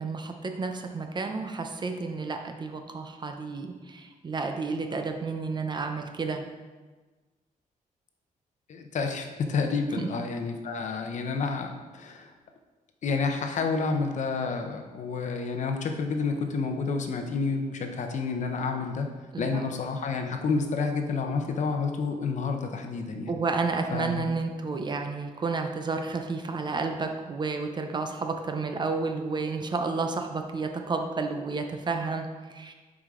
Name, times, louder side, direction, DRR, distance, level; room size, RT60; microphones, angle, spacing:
voice 1, 0.0-6.5 10.0-10.1 19.3-19.6 23.3-32.7, right 4 dB, 30° right, 5 dB, 0.5 m, -31 dB
voice 2, 8.7-12.3 13.0-19.1 19.4-23.4 23.9-24.2, left 4 dB, 55° left, 4 dB, 0.7 m, -29 dB
7.1 x 5.0 x 3.7 m, 1.3 s
wide cardioid pair, 150°, 14 cm